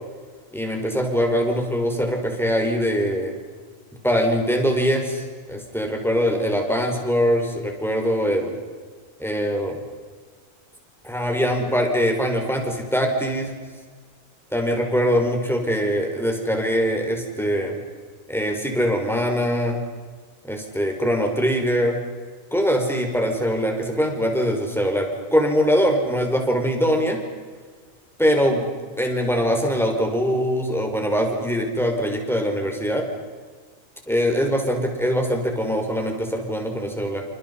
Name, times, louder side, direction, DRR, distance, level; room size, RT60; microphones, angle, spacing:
voice 1, 0.5-3.4 4.0-8.5 9.2-9.8 11.0-13.5 14.5-17.8 18.3-19.8 20.4-22.0 22.5-27.2 28.2-28.7 29.0-33.0 34.1-37.2, equal, ahead, 2 dB, 5.6 m, -22 dB
29.5 x 28.5 x 5.7 m, 1.5 s
omnidirectional pair, 1.4 m